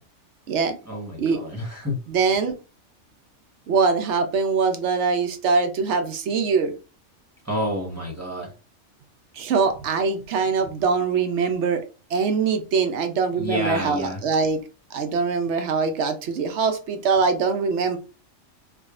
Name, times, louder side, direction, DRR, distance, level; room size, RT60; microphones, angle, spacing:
voice 1, 0.9-2.0 7.4-8.5 13.3-14.2, equal, 15° right, -2 dB, 1.1 m, -29 dB
voice 2, 2.1-2.5 3.7-6.7 9.3-11.8 12.1-14.6 14.9-18.0, right 5 dB, 70° right, 7 dB, 1.0 m, -23 dB
4.7 x 2.4 x 2.4 m, 0.33 s
omnidirectional pair, 1.3 m